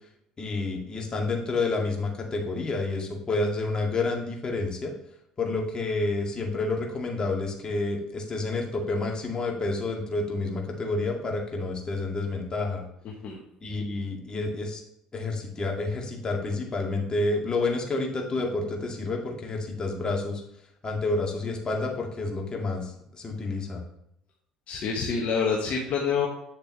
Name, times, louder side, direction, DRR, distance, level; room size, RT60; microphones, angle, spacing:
voice 1, 0.4-4.9 5.4-12.8 13.6-14.8 15.1-20.4 20.8-23.8, left 3 dB, 30° left, 0 dB, 2.0 m, -29 dB
voice 2, 13.0-13.4 24.7-26.3, left 6 dB, 50° left, -1 dB, 1.3 m, -27 dB
8.3 x 6.6 x 3.1 m, 0.76 s
hypercardioid pair, 60°, 3 cm